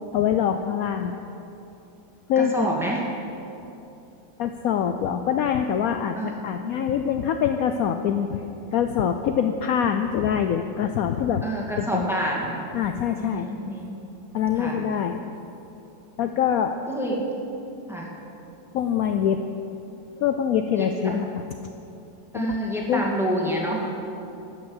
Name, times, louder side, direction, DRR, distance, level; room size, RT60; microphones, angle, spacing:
voice 1, 0.1-1.2 2.3-2.7 4.4-8.4 8.7-11.4 11.8-12.1 12.7-13.5 14.3-15.2 16.2-16.7 18.7-19.4 20.2-21.4 22.3-22.6 22.9-23.2, left 8 dB, 75° left, 7 dB, 0.8 m, -24 dB
voice 2, 2.4-3.0 6.2-6.4 11.4-12.6 13.2-13.9 14.6-14.8 16.9-17.2 17.9-18.1 20.7-20.9 22.3-23.8, right 1 dB, ahead, -3 dB, 2.0 m, -27 dB
12.5 x 8.8 x 8.0 m, 2.8 s
omnidirectional pair, 2.0 m